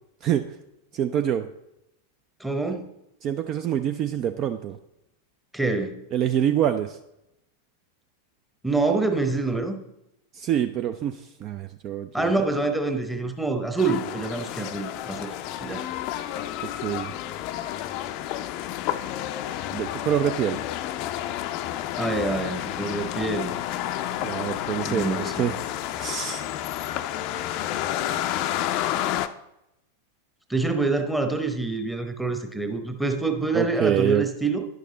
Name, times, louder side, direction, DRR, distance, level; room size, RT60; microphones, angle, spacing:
voice 1, 0.2-0.5 0.9-1.5 3.2-4.8 6.1-7.0 10.3-12.3 16.8-17.1 19.7-20.6 24.2-25.5 26.0-26.4 33.5-34.2, right 10 dB, 35° right, 8 dB, 0.4 m, -26 dB
voice 2, 2.4-2.9 5.5-6.0 8.6-9.8 12.1-15.3 15.6-15.9 22.0-23.6 24.8-25.5 30.5-34.6, right 3 dB, 5° right, 5 dB, 1.0 m, -26 dB
sound 1, 13.8-29.3, left 12 dB, 45° left, 0.5 m, -30 dB
10.5 x 6.6 x 3.9 m, 0.85 s
figure-of-eight pair, 90°, 0 cm